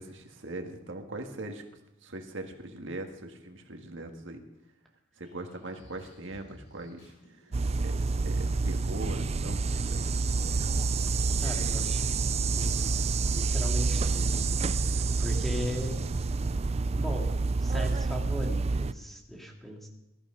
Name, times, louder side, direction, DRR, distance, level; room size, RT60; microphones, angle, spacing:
voice 1, 0.0-1.6 2.0-4.4 5.2-10.1, right 2 dB, 85° right, 4 dB, 1.7 m, -41 dB
sound 1, 5.2-11.2 11.7-13.2 13.7-14.6, equal, 70° left, 6.6 m, -54 dB
sound 2, 7.5-18.9, right 4 dB, 35° right, 0.4 m, -28 dB
voice 2, 11.4-12.0 12.6-12.9 13.3-14.4 14.7-15.9 16.9-17.3 17.6-19.9, equal, ahead, 0 dB, 2.5 m, -37 dB
20.5 x 13.5 x 3.9 m, 0.91 s
head